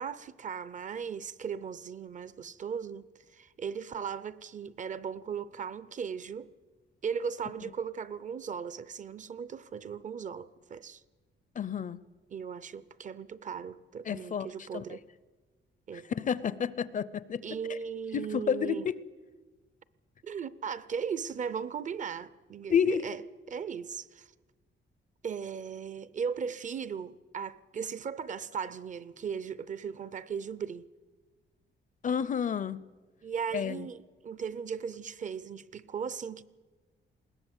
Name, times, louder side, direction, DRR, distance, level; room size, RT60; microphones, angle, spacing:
voice 1, 0.0-3.0 3.3-6.5 7.0-11.0 12.3-15.0 15.9-16.1 17.4-18.9 20.2-23.2 23.5-24.3 25.2-30.9 33.2-36.4, right 6 dB, 40° right, 0.6 m, -37 dB
voice 2, 11.6-12.0 14.0-14.5 14.7-14.8 16.1-17.4 17.7-17.8 18.1-18.9 22.7-23.0 32.0-32.8 33.5-33.9, left 7 dB, 40° left, 0.6 m, -30 dB
21.0 x 18.5 x 8.1 m
wide cardioid pair, 175°, 20 cm